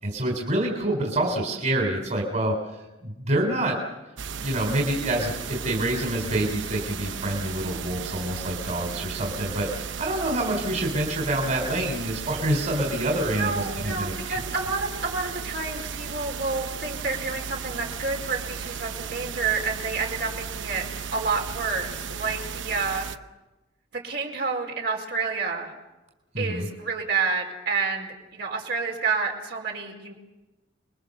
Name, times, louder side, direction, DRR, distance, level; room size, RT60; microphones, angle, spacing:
voice 1, 0.0-3.8 4.4-14.4 26.3-26.7, right 1 dB, 40° right, 1 dB, 3.9 m, -27 dB
sound 1, 4.2-23.2, right 6 dB, 85° right, 0.9 m, -35 dB
voice 2, 13.4-20.8 21.1-23.1 24.0-25.7 26.4-30.1, right 4 dB, 60° right, 1 dB, 4.7 m, -29 dB
29.0 x 22.5 x 6.8 m, 1.1 s
head